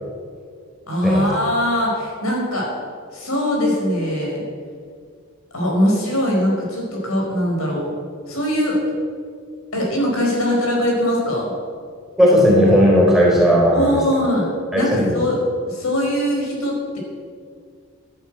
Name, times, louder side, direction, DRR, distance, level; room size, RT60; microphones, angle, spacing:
voice 1, 0.9-2.7 3.1-4.4 5.5-7.9 8.3-8.8 9.7-11.5 13.7-14.5 14.7-15.4 15.7-17.0, left 1 dB, 85° left, -2 dB, 4.9 m, -21 dB
voice 2, 12.2-14.0 14.7-15.2, equal, ahead, -4 dB, 3.5 m, -15 dB
12.0 x 10.5 x 7.9 m, 2.1 s
head